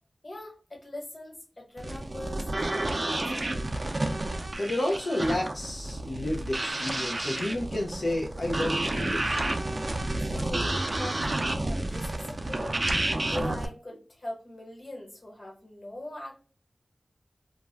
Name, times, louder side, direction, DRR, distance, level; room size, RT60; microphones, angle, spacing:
voice 1, 0.2-3.8 10.2-10.7 11.0-11.3 11.6-12.8 13.3-16.3, left 1 dB, 50° left, -1 dB, 1.3 m, -41 dB
sound 1, 1.8-13.7, right 2 dB, 45° right, 0.4 m, -30 dB
voice 2, 4.6-9.5, left 1 dB, 75° left, -3 dB, 0.5 m, -31 dB
2.3 x 2.1 x 3.4 m, 0.37 s
wide cardioid pair, 50°, 0 cm